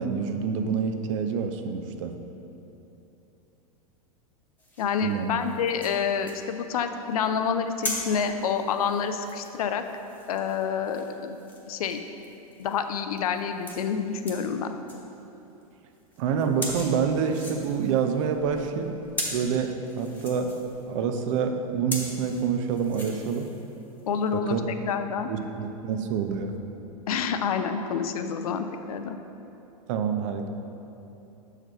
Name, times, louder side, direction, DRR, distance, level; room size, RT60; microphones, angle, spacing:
voice 1, 0.0-2.2 5.0-5.3 16.2-19.0 19.3-20.5 20.9-23.5 24.3-24.6 25.3-26.6 29.9-30.5, right 6 dB, 55° right, 6 dB, 0.6 m, -27 dB
sound 1, 4.6-15.1 15.5-15.6 15.9-24.3, left 1 dB, 10° left, 1.2 m, -41 dB
voice 2, 4.8-9.8 10.3-11.4 11.7-12.0 12.6-14.8 24.1-25.3 27.1-29.2, left 7 dB, 75° left, 8 dB, 0.5 m, -28 dB
6.4 x 4.9 x 4.4 m, 3.0 s
hypercardioid pair, 100°, 19 cm